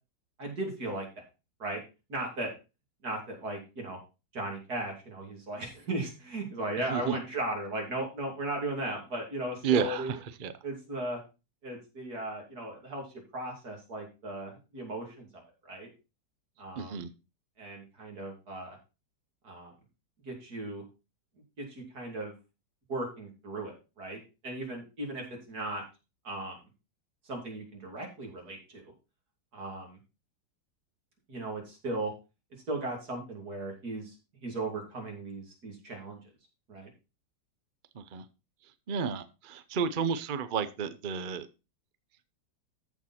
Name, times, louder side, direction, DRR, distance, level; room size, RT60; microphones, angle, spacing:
voice 1, 0.4-1.1 1.6-1.8 2.1-2.5 3.0-4.0 4.3-10.2 10.6-11.2 11.6-13.1 13.3-15.3 15.6-15.9 16.6-17.1 17.6-18.8 19.4-19.7 20.3-20.8 21.6-22.3 22.9-25.8 26.2-26.6 27.3-28.9 29.5-30.0 31.3-32.1 32.7-34.2 34.4-36.2 36.7-36.9, right 2 dB, 55° right, 1 dB, 3.5 m, -36 dB
voice 2, 6.9-7.2 9.6-10.5 16.8-17.1 38.0-38.2 38.9-41.5, right 7 dB, 75° right, 12 dB, 0.4 m, -31 dB
14.0 x 4.7 x 4.3 m, 0.29 s
omnidirectional pair, 2.0 m